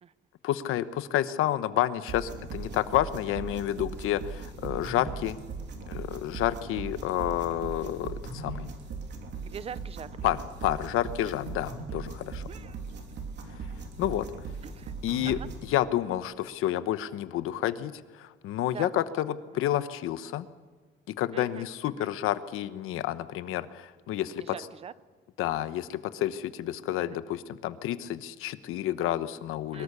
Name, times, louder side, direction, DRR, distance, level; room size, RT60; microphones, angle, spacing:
voice 1, 0.4-5.4 5.9-8.7 10.2-12.4 14.0-14.3 15.0-15.4 15.7-20.5 21.2-24.4 25.4-29.8, left 12 dB, 90° left, 13 dB, 1.1 m, -30 dB
sound 1, 2.1-15.7, right 4 dB, 55° right, 3.3 m, -39 dB
voice 2, 9.4-10.1 11.2-11.3 12.5-12.8 14.6-14.9 15.2-15.5 18.7-19.1 19.5-19.6 21.3-22.1 24.3-24.9 27.0-27.2 29.7-29.8, right 7 dB, 30° right, 17 dB, 0.6 m, -43 dB
23.0 x 21.5 x 6.9 m, 1.5 s
cardioid pair, 170°, 21 cm